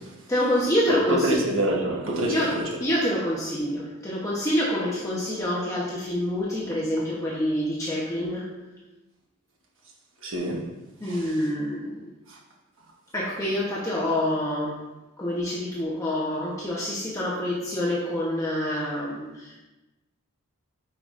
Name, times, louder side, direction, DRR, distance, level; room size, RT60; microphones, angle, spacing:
voice 1, 0.3-1.4 2.3-8.4 11.0-12.1 13.1-14.7 15.2-19.6, left 1 dB, 15° left, -7 dB, 0.9 m, -27 dB
voice 2, 1.1-2.6 10.2-10.7 11.0-11.3 12.3-12.4, right 1 dB, 60° right, -1 dB, 1.2 m, -26 dB
9.0 x 4.9 x 2.5 m, 1.0 s
head